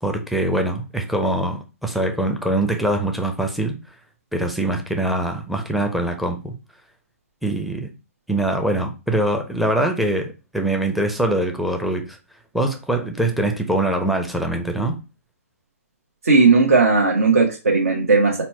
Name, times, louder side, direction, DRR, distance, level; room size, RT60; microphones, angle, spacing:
voice 1, 0.0-3.8 4.3-6.5 7.4-7.9 8.3-12.2 12.5-15.0, right 1 dB, ahead, 0.5 m, -23 dB
voice 2, 16.2-18.4, right 4 dB, 70° right, 1.0 m, -16 dB
4.2 x 2.2 x 4.2 m
hypercardioid pair, 135°, 8 cm